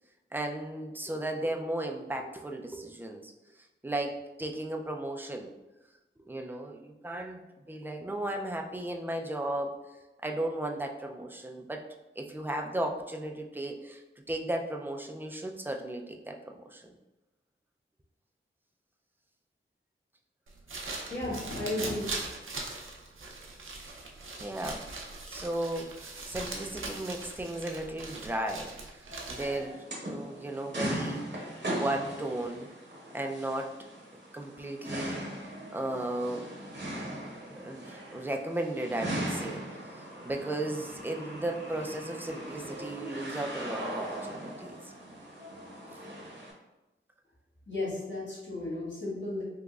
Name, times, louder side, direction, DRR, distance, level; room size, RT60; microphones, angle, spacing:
voice 1, 0.3-3.3 3.8-5.5 6.3-7.4 7.7-9.8 10.2-11.8 12.2-14.0 14.3-16.9 24.4-24.9 25.3-31.3 31.7-32.7 33.1-33.7 34.3-35.2 35.7-36.5 37.6-44.8, right 1 dB, 10° right, 2 dB, 0.3 m, -35 dB
sound 1, 20.5-29.7, right 3 dB, 70° right, 0.6 m, -41 dB
voice 2, 21.1-22.2 47.7-49.4, left 2 dB, 60° left, -7 dB, 1.4 m, -34 dB
sound 2, 29.1-46.5, right 1 dB, 55° right, 0.9 m, -39 dB
3.6 x 2.9 x 2.3 m, 1.0 s
wide cardioid pair, 85°, 21 cm